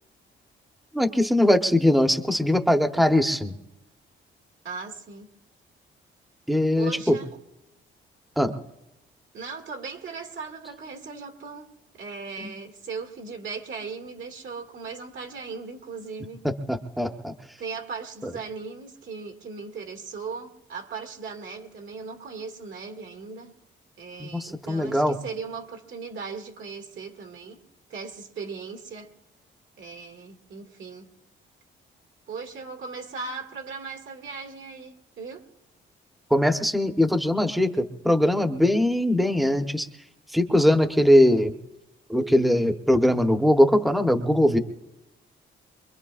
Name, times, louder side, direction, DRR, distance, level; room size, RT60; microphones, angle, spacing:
voice 1, 0.9-3.5 6.5-7.2 8.4-8.5 12.4-12.5 16.4-17.3 24.2-25.2 36.3-39.9 40.3-41.5 42.1-44.6, left 1 dB, ahead, 1.1 m, -21 dB
voice 2, 4.6-5.4 6.8-7.3 9.3-16.4 17.6-23.5 24.0-27.6 27.9-29.1 29.8-31.1 32.3-35.5, right 5 dB, 70° right, 2.2 m, -38 dB
24.5 x 22.5 x 2.5 m
cardioid pair, 90°, 21 cm